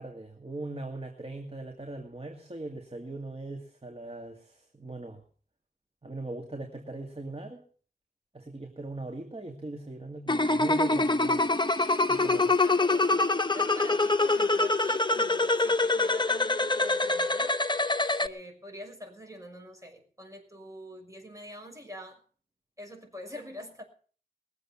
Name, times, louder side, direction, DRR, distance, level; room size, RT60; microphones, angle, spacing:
voice 1, 0.0-5.2 6.0-7.6 8.3-11.5 12.1-12.6, right 2 dB, 35° right, 2 dB, 2.3 m, -40 dB
sound 1, 10.3-18.3, left 2 dB, 25° left, 0.9 m, -25 dB
voice 2, 12.6-13.2 13.5-17.6 18.2-22.2 22.8-23.8, equal, 20° right, 2 dB, 6.2 m, -45 dB
20.5 x 8.0 x 7.3 m, 0.43 s
wide cardioid pair, 50°, 16 cm